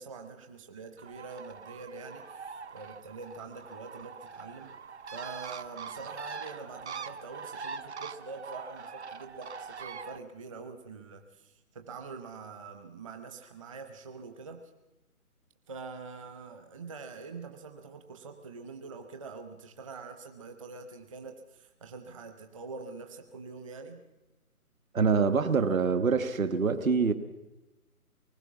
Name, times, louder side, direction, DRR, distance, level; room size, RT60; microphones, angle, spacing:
voice 1, 0.0-4.7 5.1-14.7 15.7-24.0, right 4 dB, 20° right, 5 dB, 0.9 m, -45 dB
Bird, 1.0-10.2, right 5 dB, 50° right, 0.9 m, -43 dB
voice 2, 24.9-27.1, right 5 dB, 65° right, 10 dB, 1.4 m, -25 dB
24.0 x 20.0 x 6.0 m, 1.0 s
figure-of-eight pair, 150°, 44 cm